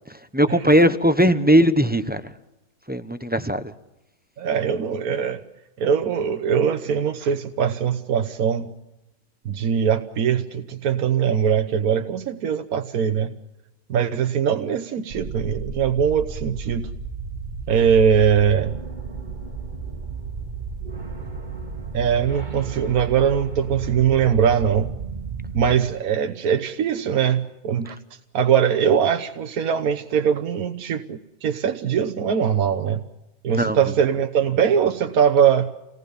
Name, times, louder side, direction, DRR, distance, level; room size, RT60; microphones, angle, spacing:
voice 1, 0.3-2.2 2.9-3.6 33.5-33.8, equal, 10° right, 10 dB, 0.6 m, -18 dB
voice 2, 4.4-5.4 5.8-8.7 9.4-13.3 13.9-16.9 17.7-18.8 21.9-24.9 25.5-28.0 28.3-33.0 33.4-35.7, right 8 dB, 70° right, 6 dB, 1.4 m, -21 dB
sound 1, 15.1-25.8, right 4 dB, 30° right, 1.8 m, -33 dB
28.0 x 19.0 x 7.0 m, 0.99 s
omnidirectional pair, 1.6 m